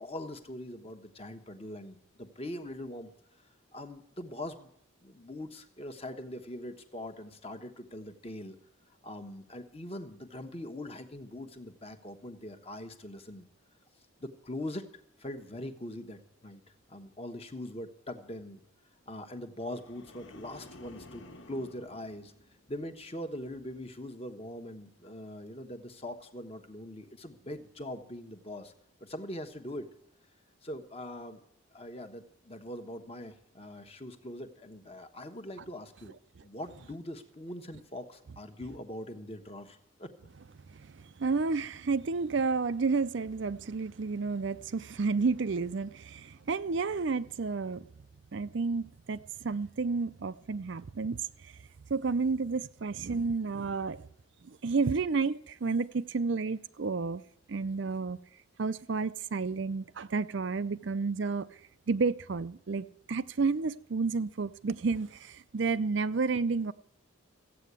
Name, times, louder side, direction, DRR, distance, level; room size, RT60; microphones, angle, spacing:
voice 1, 0.0-3.1 3.4-4.7 5.0-8.6 9.0-13.5 14.2-14.9 15.2-16.6 16.9-18.6 19.1-22.3 22.7-28.7 29.0-29.9 30.6-31.4 31.7-36.1 36.4-40.1, left 1 dB, 30° left, 1.2 m, -42 dB
sound 1, 19.6-23.0 23.4-23.8, left 1 dB, 60° left, 1.5 m, -53 dB
voice 2, 40.7-47.9 48.3-51.5 51.9-54.0 54.4-57.2 57.5-58.2 58.6-61.5 61.9-66.7, right 4 dB, 55° right, 0.5 m, -31 dB
15.0 x 8.5 x 8.2 m
head